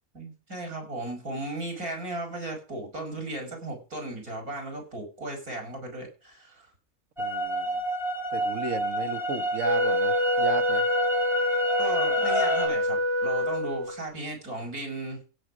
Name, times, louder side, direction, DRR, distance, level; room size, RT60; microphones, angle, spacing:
voice 1, 0.1-6.7 11.8-15.2, right 2 dB, 85° right, 6.3 m, -36 dB
sound 1, 7.2-12.7, equal, ahead, 3.9 m, -29 dB
voice 2, 7.2-7.8 8.3-10.9, right 4 dB, 60° right, 1.8 m, -33 dB
Wind instrument woodwind instrument, 9.6-14.0, left 1 dB, 35° right, 0.4 m, -26 dB
16.0 x 7.9 x 5.1 m
omnidirectional pair, 1.5 m